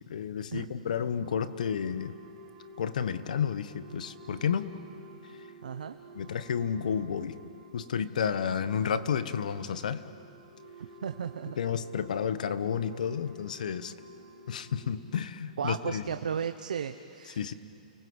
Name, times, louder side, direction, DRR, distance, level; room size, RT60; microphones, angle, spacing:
voice 1, 0.1-2.2 2.8-4.7 6.1-7.4 7.7-10.0 11.6-13.9 14.5-16.0 17.4-17.5, left 7 dB, 75° left, 13 dB, 1.2 m, -31 dB
sound 1, 1.1-14.9, equal, 55° right, 3.5 m, -51 dB
voice 2, 5.6-6.0 10.8-11.6 15.6-17.5, right 7 dB, 85° right, 8 dB, 0.9 m, -35 dB
30.0 x 20.0 x 8.0 m, 2.5 s
hypercardioid pair, 150°, 4 cm